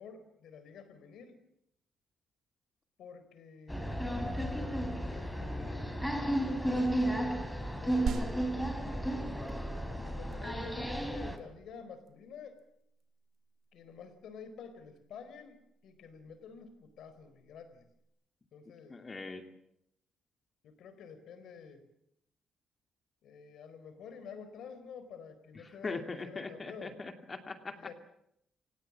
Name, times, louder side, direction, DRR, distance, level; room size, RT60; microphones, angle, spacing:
voice 1, 0.0-1.4 3.0-8.1 8.5-9.1 9.9-12.6 13.7-15.6 15.8-17.9 18.5-19.0 20.6-21.8 23.2-27.0 27.7-28.0, left 6 dB, 75° left, 12 dB, 4.4 m, -50 dB
sound 1, 3.7-11.4, right 1 dB, 5° left, 3.8 m, -33 dB
sound 2, 8.1-18.0, right 6 dB, 65° right, 3.3 m, -45 dB
voice 2, 18.9-19.5 25.8-27.8, left 3 dB, 30° left, 6 dB, 2.4 m, -40 dB
28.0 x 18.0 x 7.5 m, 0.77 s
cardioid pair, 90°, 0 cm